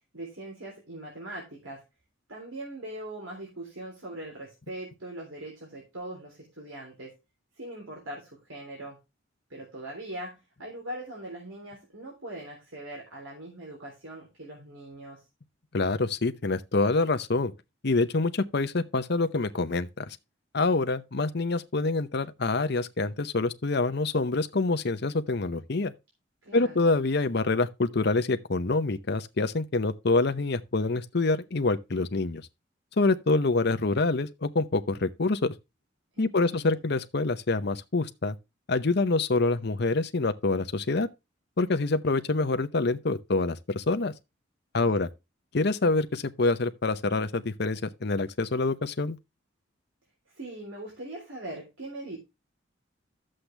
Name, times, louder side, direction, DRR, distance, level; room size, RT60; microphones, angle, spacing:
voice 1, 0.1-1.8 2.3-7.2 7.6-9.0 9.5-15.2 26.4-26.9 36.2-36.8 44.7-45.0 50.4-52.2, right 1 dB, 85° right, 3.6 m, -41 dB
voice 2, 15.7-17.5 17.8-20.2 20.5-25.9 26.5-32.4 33.0-35.5 36.2-38.3 38.7-41.1 41.6-44.1 44.7-45.1 45.5-49.2, left 3 dB, 55° left, 0.8 m, -26 dB
11.5 x 7.7 x 3.4 m
head